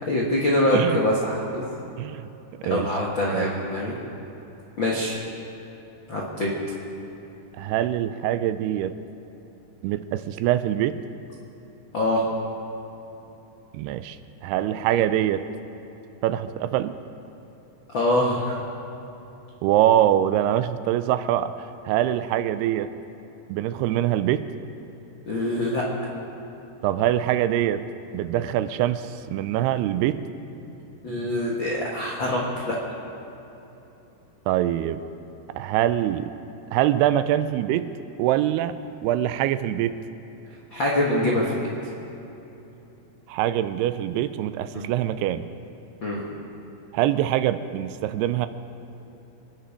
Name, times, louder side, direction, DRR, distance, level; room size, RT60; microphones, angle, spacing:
voice 1, 0.0-1.6 2.7-3.9 4.8-5.2 6.1-6.5 11.9-12.2 17.9-18.6 25.2-25.8 31.0-32.8 40.7-41.7 44.7-44.9 46.0-46.2, left 1 dB, 65° left, -4 dB, 1.2 m, -24 dB
voice 2, 0.7-1.0 2.0-2.3 2.7-2.9 3.3-3.5 7.6-9.0 9.8-11.0 13.7-15.4 16.2-17.0 19.6-22.9 23.5-24.5 26.8-27.8 28.1-30.2 34.5-35.0 35.6-36.3 36.7-37.9 38.2-38.8 39.0-39.9 43.3-45.4 46.9-48.5, right 12 dB, 85° right, 12 dB, 2.5 m, -24 dB
25.5 x 10.0 x 5.1 m, 3.0 s
omnidirectional pair, 4.7 m